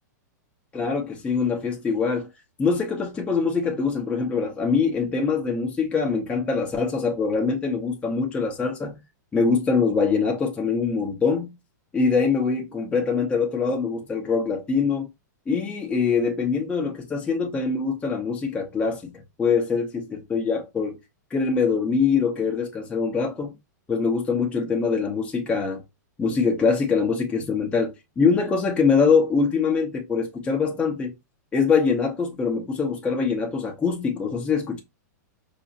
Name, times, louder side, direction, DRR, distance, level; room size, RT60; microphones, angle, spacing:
voice 1, 0.7-2.3 2.6-9.0 9.3-11.5 11.9-15.1 15.5-21.0 21.3-23.5 23.9-25.8 26.2-31.1 31.5-34.8, left 5 dB, 10° left, 0.6 m, -23 dB
4.8 x 2.0 x 2.6 m
hypercardioid pair, 135°, 10 cm